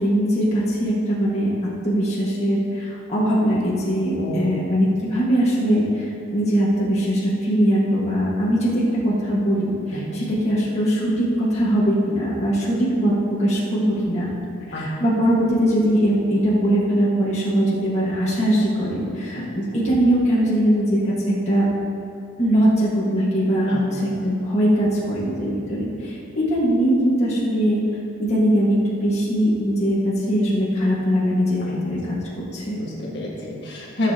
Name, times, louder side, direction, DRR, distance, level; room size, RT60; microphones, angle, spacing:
voice 1, 0.0-1.5 1.8-6.0 6.3-13.1 13.4-14.3 14.8-21.6 22.4-27.8 28.2-32.1 32.5-32.8, equal, 30° left, -8 dB, 1.6 m, -21 dB
voice 2, 4.1-4.7 9.9-10.2 14.7-14.9 19.3-19.5 23.7-24.1 31.6-31.8 32.7-34.1, left 1 dB, 55° left, -5 dB, 1.7 m, -29 dB
15.0 x 7.0 x 2.9 m, 2.6 s
head